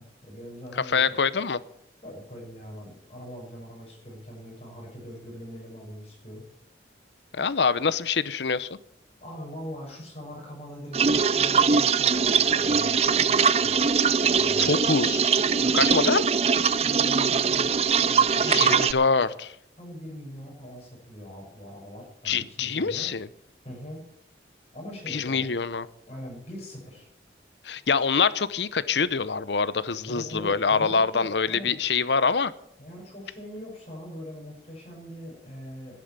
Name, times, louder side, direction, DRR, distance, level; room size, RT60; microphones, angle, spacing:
voice 1, 0.0-1.2 2.0-6.5 9.2-13.8 14.1-14.8 15.5-15.9 16.8-17.8 18.1-18.9 19.8-23.1 23.6-24.0 24.7-25.5 26.1-27.1 30.1-31.8 32.8-36.0, equal, 35° left, 6.8 m, -41 dB
voice 2, 0.9-1.6 7.3-8.7 14.6-15.3 15.7-16.2 18.5-19.6 22.2-23.3 25.1-25.9 27.6-32.5, left 5 dB, 80° left, 0.8 m, -25 dB
sound 1, 10.9-18.9, right 6 dB, 35° right, 0.5 m, -22 dB
11.0 x 10.5 x 8.9 m
head